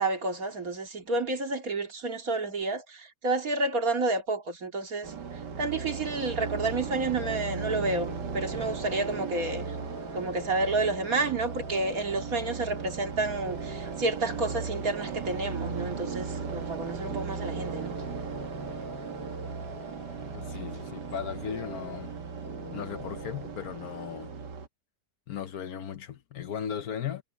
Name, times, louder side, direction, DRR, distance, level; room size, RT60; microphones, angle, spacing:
voice 1, 0.0-9.6 10.1-17.9, right 2 dB, 55° right, 2.6 m, -30 dB
sound 1, 5.0-24.7, right 5 dB, 75° right, 2.2 m, -37 dB
sound 2, 5.7-23.5, right 1 dB, 30° right, 6.8 m, -45 dB
voice 2, 20.3-22.1 22.7-24.3 25.3-27.2, left 8 dB, 65° left, 1.2 m, -36 dB
omnidirectional pair, 1.8 m